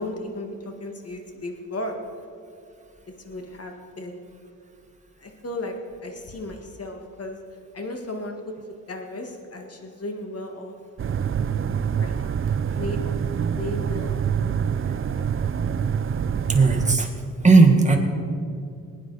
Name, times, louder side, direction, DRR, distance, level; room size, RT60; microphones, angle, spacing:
voice 1, 0.0-1.9 3.3-4.2 5.2-5.7 6.0-7.4 7.7-8.4 8.9-10.7 12.0-12.4 12.8-13.2 13.5-14.7, left 1 dB, 45° left, 3 dB, 1.9 m, -35 dB
sound 1, 11.0-17.0, right 7 dB, 40° right, 0.5 m, -26 dB
voice 2, 16.5-17.1 17.4-18.0, right 3 dB, 20° right, 2 dB, 1.8 m, -16 dB
20.0 x 9.6 x 4.2 m, 2.5 s
cardioid pair, 85°, 34 cm